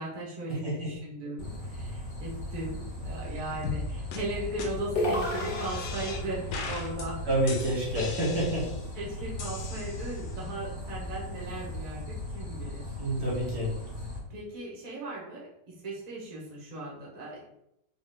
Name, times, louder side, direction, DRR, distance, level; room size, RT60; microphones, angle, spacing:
voice 1, 0.0-7.2 8.9-13.0 14.3-17.5, right 1 dB, 25° right, -5 dB, 1.4 m, -38 dB
sound 1, 1.4-14.2, left 1 dB, 30° left, 1.7 m, -38 dB
sound 2, 3.6-3.8 4.1-4.2 4.6-4.7 5.1-6.2 6.5-7.1 7.5-8.9 9.4-10.3, left 5 dB, 90° left, 1.4 m, -39 dB
sound 3, 5.0-6.5, left 1 dB, 55° left, 0.6 m, -31 dB
voice 2, 7.3-8.7 13.0-13.7, right 1 dB, 55° right, -5 dB, 1.7 m, -28 dB
4.2 x 3.3 x 3.7 m, 0.80 s
omnidirectional pair, 1.9 m